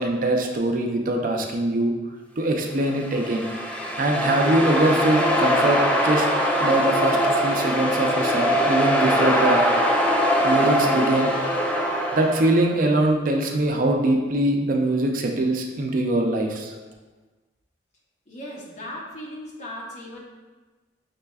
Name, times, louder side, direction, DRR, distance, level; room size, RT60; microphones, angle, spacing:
voice 1, 0.0-1.9 2.4-3.5 4.0-6.3 6.6-9.6 10.4-11.3 12.1-16.7, right 1 dB, 50° right, 3 dB, 0.5 m, -22 dB
sound 1, 2.9-12.7, equal, 5° left, 0.4 m, -22 dB
voice 2, 18.3-20.2, left 1 dB, 40° left, -2 dB, 0.8 m, -37 dB
5.7 x 3.3 x 2.3 m, 1.3 s
head